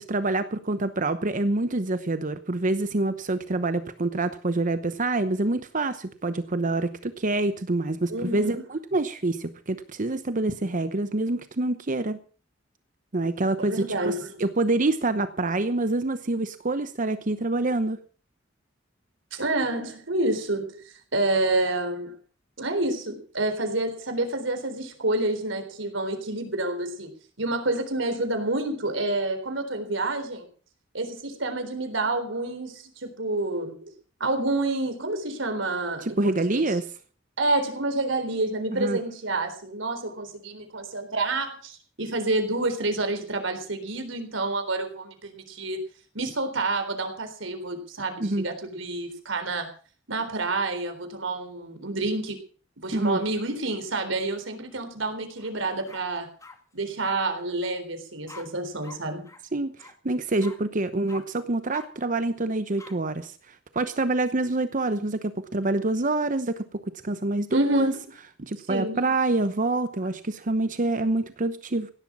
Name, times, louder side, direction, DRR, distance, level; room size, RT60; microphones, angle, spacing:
voice 1, 0.0-12.2 13.1-14.1 14.4-18.0 36.0-36.9 38.7-39.0 48.2-48.4 52.9-53.2 59.5-67.9 68.4-71.9, right 2 dB, 45° right, 11 dB, 0.9 m, -26 dB
voice 2, 8.1-8.6 13.6-14.3 19.3-22.2 22.6-27.1 27.4-30.5 30.9-33.9 34.2-36.8 37.4-45.8 46.1-49.7 50.1-52.4 52.8-56.3 56.7-59.3 67.5-67.9 68.7-69.0, right 2 dB, 90° right, 6 dB, 3.9 m, -28 dB
sound 1, 55.4-55.5 55.9-56.6 57.0-57.2 58.3-58.4 58.8-59.0 59.2-59.4 59.8-59.9 60.4-60.6 61.1-61.2 61.7-61.9 62.8-62.9, left 3 dB, 15° left, 2.3 m, -45 dB
16.5 x 11.5 x 6.1 m, 0.41 s
head